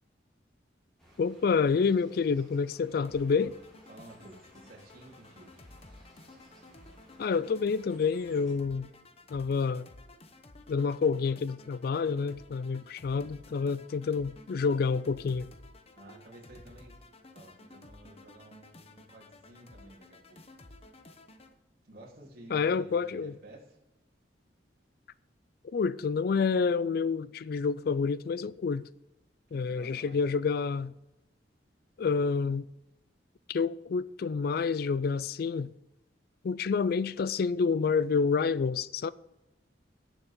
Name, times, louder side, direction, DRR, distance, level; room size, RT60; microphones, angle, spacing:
sound 1, 1.0-8.5, equal, 5° left, 3.9 m, -60 dB
voice 1, 1.2-3.6 7.2-8.9 9.3-9.9 10.7-15.5 22.5-23.3 25.6-28.9 29.5-30.9 32.0-32.7 33.5-35.7 36.4-39.1, left 5 dB, 55° left, 0.4 m, -28 dB
sound 2, 3.0-21.5, left 2 dB, 35° left, 0.9 m, -54 dB
voice 2, 3.9-5.6 16.0-17.0 17.3-20.6 21.8-23.8 29.5-30.2, right 1 dB, 55° right, 3.7 m, -53 dB
17.5 x 7.1 x 3.8 m
head